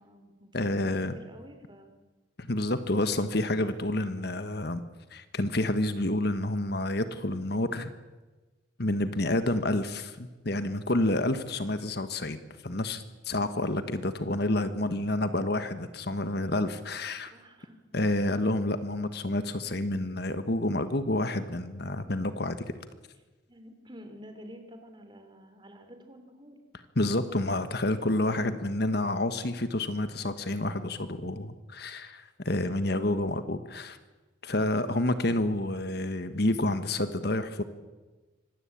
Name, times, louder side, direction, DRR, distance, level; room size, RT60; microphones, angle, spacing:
voice 1, 0.0-1.9 17.3-18.1 23.5-26.6 27.3-27.6 32.6-33.1, equal, 25° right, 6 dB, 3.2 m, -50 dB
voice 2, 0.5-1.1 2.4-4.8 5.1-7.9 8.8-17.3 17.9-22.7 27.0-34.0 34.4-37.6, left 1 dB, 55° left, 10 dB, 1.4 m, -29 dB
25.0 x 19.0 x 8.7 m, 1.2 s
head